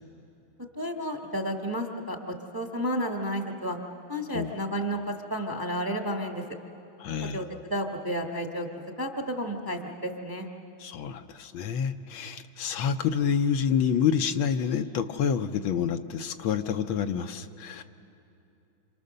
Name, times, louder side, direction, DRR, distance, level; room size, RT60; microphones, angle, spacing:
voice 1, 0.8-2.2 2.5-3.8 4.1-6.4 7.2-10.5, equal, 15° right, 2 dB, 1.1 m, -31 dB
voice 2, 7.0-7.4 10.8-17.8, left 7 dB, 75° left, 7 dB, 1.5 m, -28 dB
27.5 x 27.0 x 6.7 m, 2.8 s
omnidirectional pair, 2.3 m